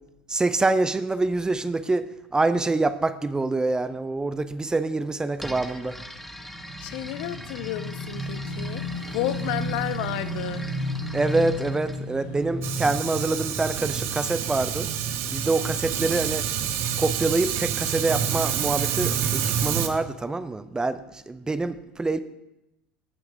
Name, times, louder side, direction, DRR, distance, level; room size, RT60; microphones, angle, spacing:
voice 1, 0.3-6.0 11.1-14.9 15.3-16.5 17.0-22.2, right 3 dB, 15° right, 13 dB, 0.6 m, -26 dB
sound 1, 5.4-12.0, equal, 5° left, 1.0 m, -41 dB
Motorcycle / Engine, 6.1-14.7, equal, 70° right, 2.0 m, -34 dB
voice 2, 6.8-8.8 9.1-10.7, left 14 dB, 60° left, 13 dB, 0.5 m, -31 dB
Fire, 12.6-19.9, right 9 dB, 50° right, 0.9 m, -27 dB
17.5 x 6.0 x 3.6 m, 0.89 s
figure-of-eight pair, 70°, 5 cm